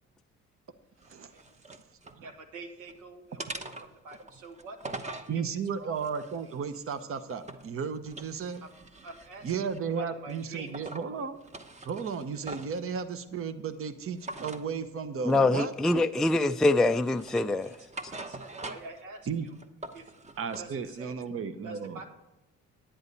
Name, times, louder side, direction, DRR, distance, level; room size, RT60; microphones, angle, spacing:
sound 1, 1.0-2.2 2.6-3.0 3.4-5.3 5.9-7.7 8.1-9.9 10.3-11.1 11.4-12.8 14.2-14.7 15.3-15.5 15.9-16.6 17.0-19.0 19.4-20.7, right 2 dB, 25° right, 1.0 m, -43 dB
voice 1, 2.2-6.0 8.6-8.7 9.0-11.2 17.6-19.6 19.9-20.1 20.6-21.1 21.6-22.0, right 3 dB, 85° right, 5 dB, 1.7 m, -47 dB
voice 2, 5.3-8.6 9.4-11.4 11.8-16.3 19.3-19.5 20.4-22.0, right 6 dB, 45° right, 11 dB, 0.9 m, -34 dB
voice 3, 15.3-17.7, left 2 dB, ahead, 7 dB, 0.3 m, -24 dB
10.0 x 10.0 x 4.1 m, 0.96 s
cardioid pair, 90°, 30 cm